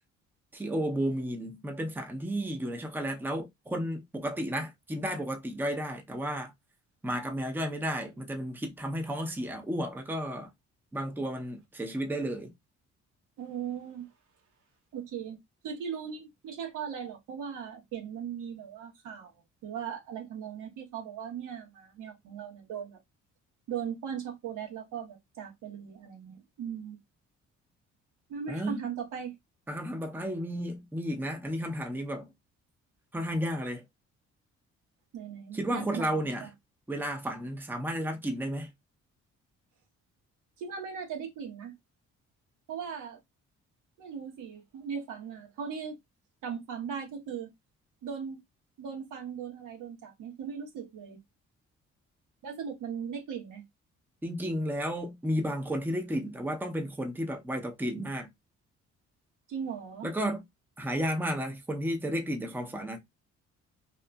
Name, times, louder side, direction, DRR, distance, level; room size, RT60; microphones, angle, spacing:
voice 1, 0.5-6.5 7.0-10.5 10.9-12.5 28.5-28.8 29.7-32.3 33.1-33.8 35.5-36.5 36.9-38.7 54.2-58.3 60.0-60.4 60.8-63.0, equal, 5° right, 0.7 m, -32 dB
voice 2, 13.4-14.1 14.9-15.4 15.6-19.3 19.6-23.0 23.7-27.0 28.3-29.4 35.1-36.5 40.6-41.7 42.7-43.2 44.0-46.0 46.4-47.5 48.0-48.4 48.8-51.2 52.4-53.6 59.5-60.1, right 7 dB, 80° right, 1.1 m, -38 dB
2.8 x 2.4 x 2.3 m
cardioid pair, 90°, 30 cm